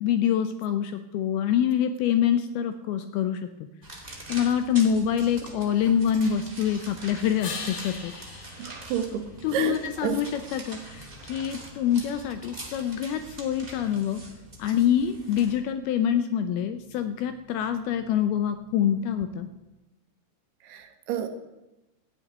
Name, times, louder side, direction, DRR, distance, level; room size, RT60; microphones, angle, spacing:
voice 1, 0.0-3.4 4.3-8.1 9.4-14.2 14.6-19.5, left 9 dB, 80° left, 9 dB, 2.3 m, -25 dB
sound 1, 3.8-15.6, right 1 dB, 20° right, 1.2 m, -44 dB
sound 2, 7.4-10.0 15.7-19.7, left 4 dB, 50° left, 2.5 m, -44 dB
voice 2, 8.6-10.2 20.6-21.3, right 9 dB, 75° right, 7 dB, 2.9 m, -30 dB
14.5 x 7.1 x 9.9 m, 0.99 s
omnidirectional pair, 5.0 m